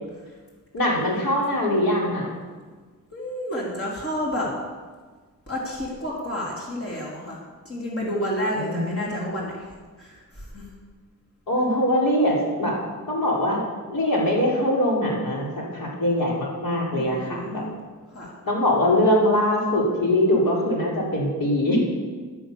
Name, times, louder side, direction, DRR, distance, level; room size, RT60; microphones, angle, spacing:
voice 1, 0.7-2.3 8.5-9.2 11.5-12.7 13.1-13.6 13.9-17.6 18.4-21.8, left 1 dB, 75° left, -4 dB, 4.8 m, -22 dB
voice 2, 3.1-4.5 5.5-7.4 7.6-9.7 10.0-10.6 16.9-17.7 18.1-18.3, equal, 40° left, -4 dB, 3.9 m, -30 dB
13.5 x 12.5 x 7.1 m, 1.4 s
wide cardioid pair, 150°, 34 cm